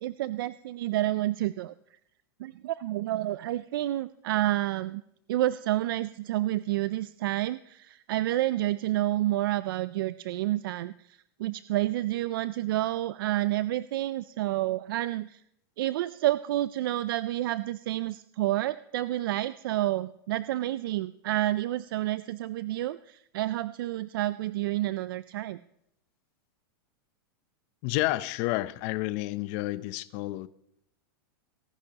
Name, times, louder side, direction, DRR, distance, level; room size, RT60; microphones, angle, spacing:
voice 1, 0.0-2.0 2.4-5.0 5.3-15.4 15.8-25.6, right 15 dB, 65° right, 0.4 m, -29 dB
voice 2, 27.8-30.5, left 18 dB, 40° left, 0.6 m, -30 dB
23.5 x 11.5 x 2.9 m
supercardioid pair, 150°, 13 cm